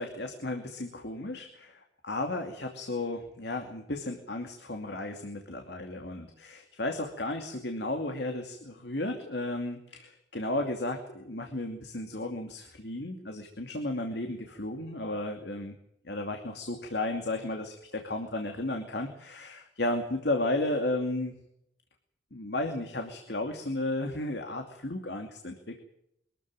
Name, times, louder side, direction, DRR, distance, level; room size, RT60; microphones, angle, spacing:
voice 1, 0.0-15.8 16.0-21.3 22.3-25.8, left 2 dB, 65° left, 4 dB, 2.6 m, -34 dB
23.5 x 14.0 x 9.1 m, 0.77 s
head